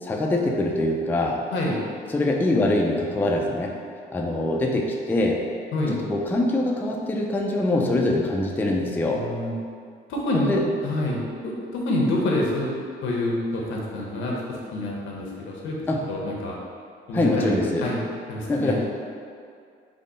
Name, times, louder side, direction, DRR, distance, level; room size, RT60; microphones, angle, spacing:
voice 1, 0.0-1.4 2.1-3.7 4.1-5.4 5.9-9.2 10.3-10.7 15.9-16.0 17.1-17.9 18.5-18.9, left 2 dB, 10° left, 0 dB, 0.3 m, -24 dB
voice 2, 9.1-9.6 10.1-12.7 13.0-15.8 16.1-16.5 17.1-18.0 18.3-18.8, left 1 dB, 75° left, -3 dB, 0.7 m, -27 dB
3.5 x 2.0 x 3.8 m, 2.2 s
cardioid pair, 90°, 20 cm